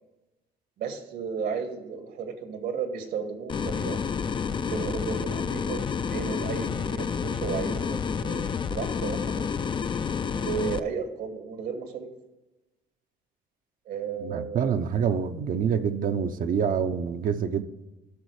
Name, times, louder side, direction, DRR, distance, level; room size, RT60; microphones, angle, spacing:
voice 1, 0.8-4.0 4.7-9.4 10.2-12.1 13.9-14.7, right 6 dB, 75° right, 6 dB, 2.0 m, -34 dB
sound 1, 3.5-10.8, left 6 dB, 30° left, 0.5 m, -29 dB
voice 2, 14.2-17.6, right 7 dB, 55° right, 7 dB, 0.9 m, -26 dB
13.5 x 6.3 x 4.9 m, 1.1 s
cardioid pair, 110°, 17 cm